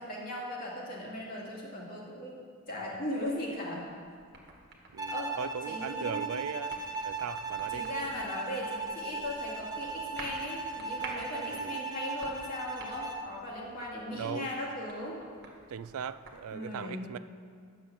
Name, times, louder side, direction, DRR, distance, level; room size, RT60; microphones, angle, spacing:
voice 1, 0.0-3.8 5.1-5.3 5.7-6.3 7.7-15.2 16.5-17.1, left 1 dB, 40° left, -4 dB, 2.5 m, -38 dB
sound 1, 3.2-16.4, right 3 dB, 50° right, 1.6 m, -51 dB
voice 2, 4.9-6.8 7.0-7.9 11.5-11.8 14.1-14.5 15.7-17.2, right 7 dB, 70° right, 14 dB, 0.4 m, -39 dB
Bowed string instrument, 5.0-13.3, right 3 dB, 20° right, 0.8 m, -38 dB
10.0 x 7.1 x 7.0 m, 2.2 s
head